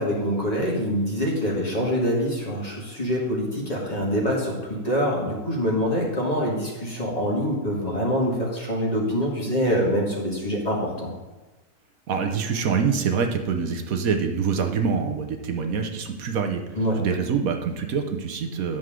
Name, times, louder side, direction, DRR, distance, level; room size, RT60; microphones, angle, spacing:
voice 1, 0.0-11.1 16.8-17.0, equal, 25° left, -3 dB, 2.0 m, -25 dB
voice 2, 12.1-18.8, right 6 dB, 65° right, 5 dB, 1.3 m, -25 dB
11.0 x 7.1 x 3.8 m, 1.2 s
omnidirectional pair, 1.7 m